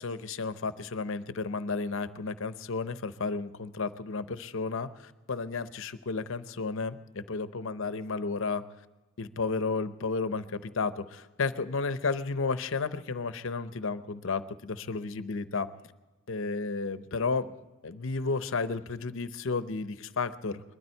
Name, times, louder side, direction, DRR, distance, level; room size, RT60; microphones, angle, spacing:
voice 1, 0.0-8.6 9.2-15.7 16.3-17.5 17.8-20.6, left 4 dB, 70° left, 12 dB, 0.8 m, -32 dB
21.0 x 12.5 x 4.5 m, 1.1 s
head